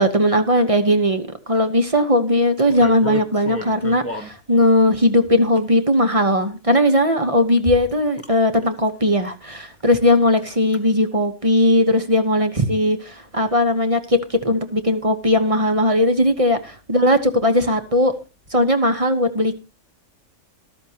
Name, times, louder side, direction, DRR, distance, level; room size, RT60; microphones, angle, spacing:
voice 1, 0.0-18.1 18.5-19.5, left 1 dB, 25° right, 8 dB, 1.1 m, -18 dB
sound 1, 2.6-4.3 5.0-5.9 6.8-6.9 7.6-8.3 8.6-8.9 9.3-9.4 9.7-10.1 10.4-10.8 11.2-11.3, left 3 dB, 10° left, 1.5 m, -31 dB
13.5 x 13.0 x 2.9 m, 0.31 s
omnidirectional pair, 1.5 m